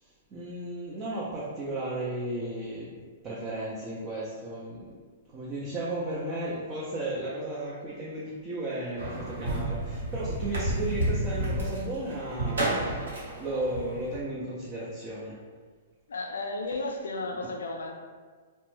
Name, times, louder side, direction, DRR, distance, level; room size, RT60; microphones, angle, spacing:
voice 1, 0.0-4.9 5.3-12.9 13.3-15.4, right 1 dB, 30° right, -7 dB, 0.5 m, -34 dB
sound 1, 9.0-14.2, right 1 dB, 80° right, 0.9 m, -31 dB
voice 2, 16.1-17.9, left 2 dB, 80° left, 1 dB, 0.3 m, -33 dB
2.5 x 2.1 x 3.1 m, 1.5 s
hypercardioid pair, 120°, 0 cm